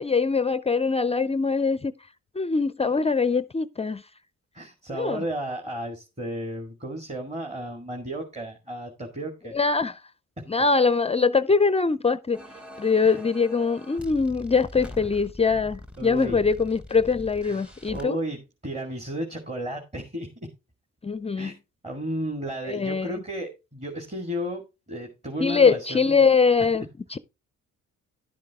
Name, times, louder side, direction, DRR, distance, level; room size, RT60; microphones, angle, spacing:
voice 1, 0.0-1.9 2.3-4.0 4.9-5.2 9.5-10.0 10.5-12.4 12.8-18.2 21.0-21.5 22.7-23.1 25.4-26.9 27.1-27.2, left 4 dB, 20° left, 0.5 m, -22 dB
voice 2, 4.5-9.6 10.4-10.5 13.0-13.2 16.0-16.4 17.4-20.5 21.4-21.6 21.8-26.3, right 1 dB, 20° right, 2.2 m, -33 dB
sound 1, 12.3-18.0, left 1 dB, 5° right, 0.9 m, -43 dB
11.5 x 7.4 x 3.6 m
cardioid pair, 90°, 30 cm